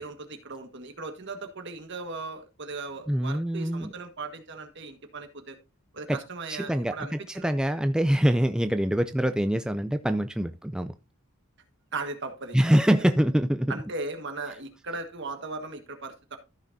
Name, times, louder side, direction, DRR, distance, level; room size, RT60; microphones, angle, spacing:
voice 1, 0.0-5.6 5.9-7.5 11.9-12.7 13.7-16.4, right 3 dB, 60° right, 1.6 m, -37 dB
voice 2, 3.1-3.9 6.1-6.2 6.5-10.9 12.5-13.8, equal, 5° right, 0.4 m, -24 dB
14.0 x 6.1 x 2.7 m
head